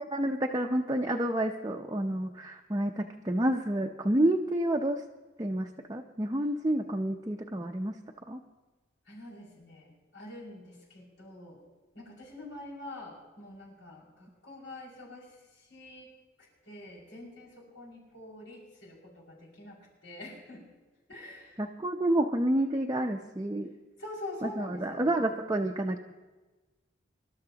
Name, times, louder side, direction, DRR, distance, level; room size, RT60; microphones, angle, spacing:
voice 1, 0.0-5.0 5.4-8.0 8.3-8.4 21.6-23.7 24.4-26.0, right 1 dB, 20° right, 1 dB, 0.6 m, -29 dB
voice 2, 9.1-11.6 11.9-16.1 16.4-20.7 21.1-21.6 24.0-25.3, left 1 dB, 90° left, -4 dB, 5.7 m, -46 dB
25.0 x 12.5 x 2.9 m, 1.2 s
head